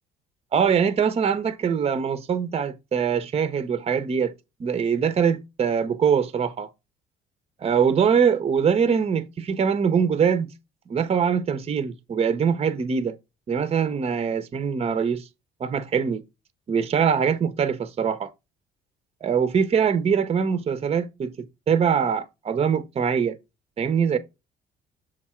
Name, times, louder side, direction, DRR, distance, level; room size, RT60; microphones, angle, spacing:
voice 1, 0.5-4.3 4.6-6.7 7.6-10.5 10.9-13.2 13.5-15.2 15.6-16.2 16.7-18.3 19.2-23.4 23.8-24.2, right 7 dB, 35° right, 0.9 m, -23 dB
6.7 x 3.6 x 4.3 m
cardioid pair, 110°, 17 cm